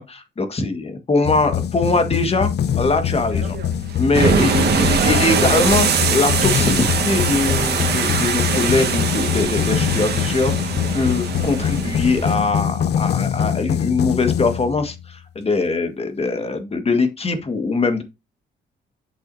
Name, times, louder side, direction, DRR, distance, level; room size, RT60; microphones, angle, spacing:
voice 1, 0.0-2.5 2.8-3.6 4.0-18.0, left 3 dB, 30° left, 1.7 m, -22 dB
sound 1, 1.2-15.1, left 9 dB, 55° left, 0.7 m, -24 dB
sound 2, 2.7-12.4, right 6 dB, 55° right, 1.8 m, -22 dB
8.7 x 6.2 x 2.7 m
cardioid pair, 90°, 20 cm